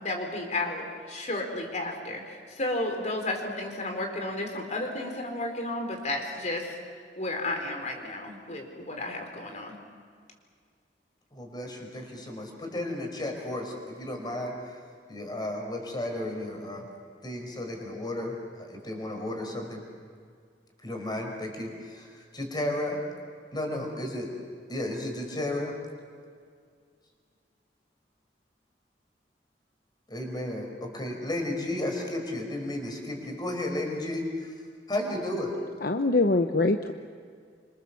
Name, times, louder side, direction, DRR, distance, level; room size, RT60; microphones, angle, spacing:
voice 1, 0.0-6.8 7.2-9.8, left 2 dB, 45° left, 3 dB, 4.2 m, -32 dB
voice 2, 11.3-14.8 15.1-16.9 17.2-19.8 20.8-23.0 23.5-24.3 24.7-25.8 30.1-34.5 34.9-35.5, left 1 dB, 25° left, 2 dB, 5.3 m, -33 dB
voice 3, 35.8-36.9, left 2 dB, 60° left, 6 dB, 0.9 m, -23 dB
26.5 x 26.0 x 7.2 m, 2.1 s
head